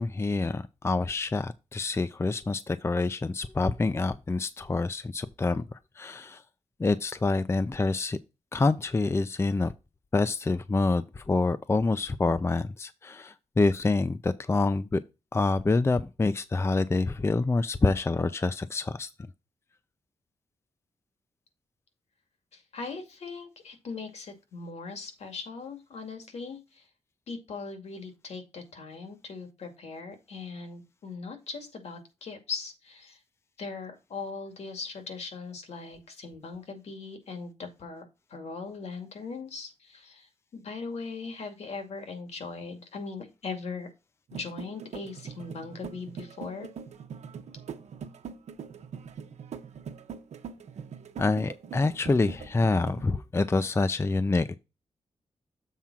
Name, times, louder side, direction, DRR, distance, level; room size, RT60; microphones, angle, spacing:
voice 1, 0.0-6.4 6.8-8.2 8.5-9.7 10.1-15.0 15.3-19.1 51.2-54.6, left 3 dB, 25° left, 0.5 m, -27 dB
voice 2, 22.5-26.8 27.3-33.2 33.6-38.0 38.3-43.9 44.3-46.7, left 4 dB, 70° left, 2.3 m, -39 dB
sound 1, 44.3-53.0, right 7 dB, 80° right, 1.0 m, -42 dB
7.4 x 3.6 x 5.9 m
cardioid pair, 75°, 11 cm